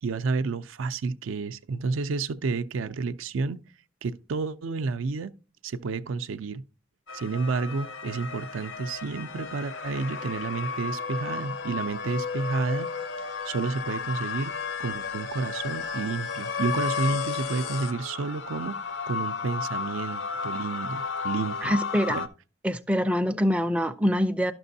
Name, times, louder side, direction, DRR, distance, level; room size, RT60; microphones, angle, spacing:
voice 1, 0.0-3.6 4.0-5.3 5.6-6.6 7.1-12.9 13.5-14.5 14.8-18.8 19.1-21.8 22.1-22.3, right 4 dB, 85° right, 0.4 m, -30 dB
sound 1, 7.1-22.3, left 5 dB, 65° left, 0.6 m, -33 dB
voice 2, 21.6-22.2 22.6-24.5, equal, 5° right, 0.3 m, -24 dB
11.5 x 6.0 x 2.7 m
head